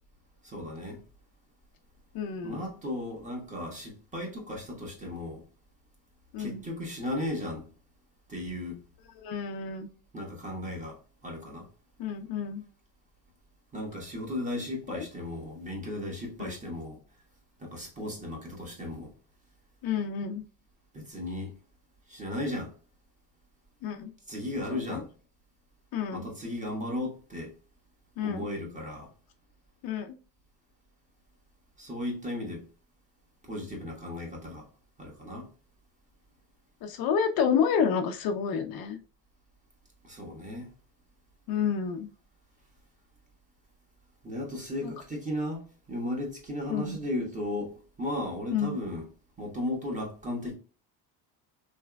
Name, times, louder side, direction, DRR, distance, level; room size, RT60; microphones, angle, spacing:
voice 1, 0.4-1.0 2.4-5.4 6.4-7.7 8.3-8.8 10.1-11.7 13.7-17.0 17.6-19.1 20.9-21.5 22.1-22.7 24.3-25.1 26.1-27.5 28.2-29.1 31.8-32.6 33.4-34.7 35.0-35.5 40.0-40.7 44.2-49.1 49.4-50.5, left 1 dB, 15° right, 1.4 m, -35 dB
voice 2, 2.1-2.6 6.3-6.6 9.2-9.9 12.0-12.6 14.9-15.0 16.4-16.5 19.8-20.4 23.8-24.1 24.7-25.0 25.9-26.3 28.2-28.4 29.8-30.2 36.8-39.0 41.5-42.1 44.8-44.9 46.7-47.0 48.5-48.8, left 7 dB, 55° left, 0.6 m, -29 dB
3.4 x 3.0 x 2.2 m
cardioid pair, 120°, 43 cm